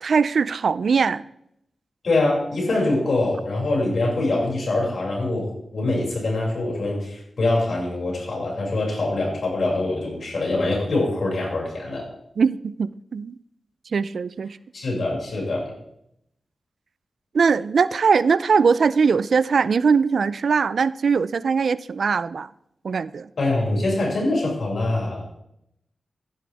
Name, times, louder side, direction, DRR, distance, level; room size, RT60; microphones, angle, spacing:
voice 1, 0.0-1.2 12.4-13.4 13.9-14.6 17.3-22.5 22.8-23.3, right 5 dB, 70° right, 17 dB, 0.4 m, -21 dB
voice 2, 2.0-12.0 14.7-15.7 23.4-25.2, left 2 dB, 70° left, -3 dB, 6.0 m, -24 dB
15.0 x 11.0 x 3.5 m, 0.78 s
wide cardioid pair, 100°, 0 cm